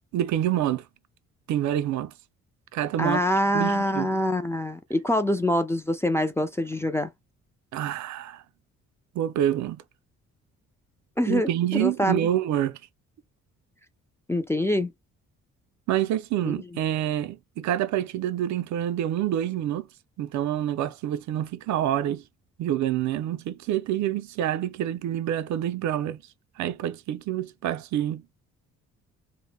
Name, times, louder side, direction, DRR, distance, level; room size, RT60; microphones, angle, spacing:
voice 1, 0.1-0.8 1.5-2.1 2.7-3.2 3.5-4.1 7.7-8.4 9.1-9.8 11.3-12.8 15.9-19.9 20.2-22.2 22.6-26.2 26.6-28.2, right 11 dB, 70° right, 0.4 m, -27 dB
voice 2, 3.0-7.1 11.2-12.3 14.3-14.9 16.4-16.6, left 1 dB, 10° left, 0.3 m, -25 dB
2.0 x 2.0 x 3.2 m
cardioid pair, 90°, 30 cm